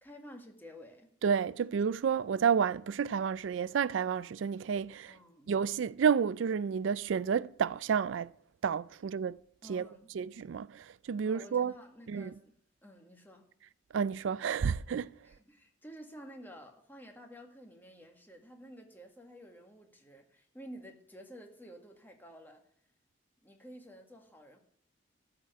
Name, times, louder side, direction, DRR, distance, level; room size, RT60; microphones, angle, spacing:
voice 1, 0.0-1.1 5.1-5.5 9.6-10.1 11.2-13.5 15.2-22.6 23.4-24.6, equal, 10° left, 1.8 m, -51 dB
voice 2, 1.2-5.2 5.5-8.3 8.6-9.4 9.7-9.9 10.1-11.7 12.1-12.3 13.9-15.1, right 7 dB, 80° right, 0.4 m, -30 dB
13.0 x 5.1 x 9.0 m
head